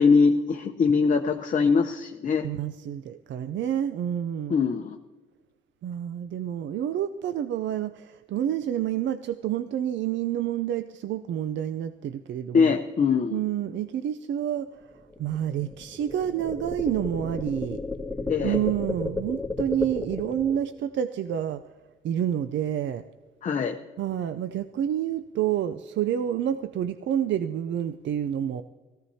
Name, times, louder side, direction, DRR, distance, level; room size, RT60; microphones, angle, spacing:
voice 1, 0.0-2.5 4.5-5.0 12.5-13.4 18.3-18.6 23.4-23.8, left 5 dB, 40° left, 4 dB, 0.8 m, -22 dB
voice 2, 2.4-4.6 5.8-12.8 13.3-17.8 18.4-21.6 22.0-23.0 24.0-28.6, right 10 dB, 65° right, 11 dB, 0.5 m, -29 dB
sound 1, 14.8-20.6, left 3 dB, 5° left, 2.0 m, -32 dB
17.5 x 15.0 x 2.8 m, 1.3 s
cardioid pair, 90°, 20 cm